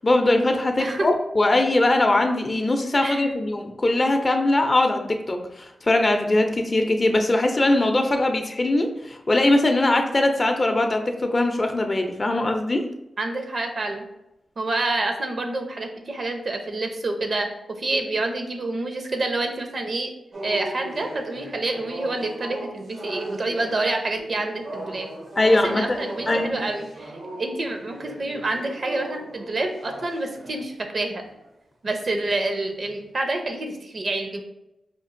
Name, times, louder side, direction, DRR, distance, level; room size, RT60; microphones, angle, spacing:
voice 1, 0.0-12.9 25.4-26.0 26.3-26.6, left 2 dB, 40° left, 4 dB, 0.5 m, -21 dB
voice 2, 13.2-14.0 14.6-20.1 20.4-25.1 25.6-31.2 31.8-34.4, right 2 dB, 60° right, 4 dB, 0.6 m, -28 dB
sound 1, 20.3-30.7 31.2-31.4 32.1-32.4 32.8-33.0, right 1 dB, 85° right, 1.0 m, -37 dB
5.1 x 2.4 x 2.5 m, 0.89 s
cardioid pair, 60°, 0 cm